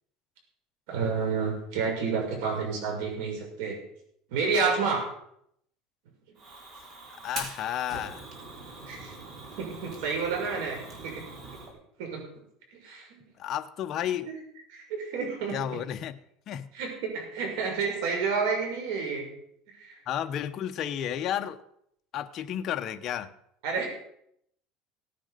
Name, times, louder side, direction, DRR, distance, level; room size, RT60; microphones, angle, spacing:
voice 1, 0.9-3.8 4.3-5.0 6.3-6.4 8.9-9.1 9.6-11.2 12.0-12.2 12.7-13.3 14.3-14.4 14.7-15.6 16.7-19.3 19.7-20.0 23.6-23.9, right 5 dB, 80° right, 1 dB, 6.2 m, -30 dB
Fire, 6.4-11.7, right 2 dB, 40° right, 3.7 m, -43 dB
voice 2, 7.2-8.3 13.4-14.3 15.5-16.2 16.5-16.7 20.1-21.6 22.1-23.3, left 10 dB, 40° left, 6 dB, 0.9 m, -32 dB
17.5 x 10.5 x 5.1 m, 0.73 s
cardioid pair, 145°, 0 cm